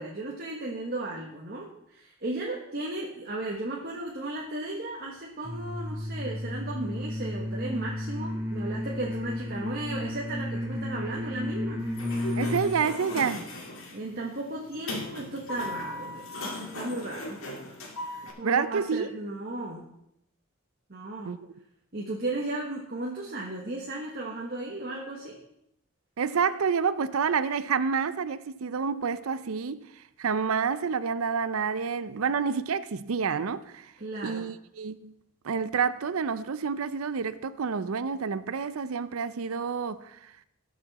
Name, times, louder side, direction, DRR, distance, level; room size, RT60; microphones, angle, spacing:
voice 1, 0.0-11.9 13.9-16.3 16.6-17.4 18.4-19.9 20.9-21.4 21.9-25.4 34.0-34.5, right 2 dB, 45° right, 1.3 m, -35 dB
sound 1, 5.4-12.8, left 1 dB, 10° right, 2.3 m, -33 dB
Sliding door, 11.8-18.3, left 1 dB, 70° left, 2.3 m, -38 dB
voice 2, 12.4-13.6 18.4-19.1 21.2-21.5 26.2-29.8 30.2-33.9 34.2-35.1 35.4-40.3, right 6 dB, 75° right, 0.5 m, -28 dB
19.0 x 6.4 x 4.1 m
head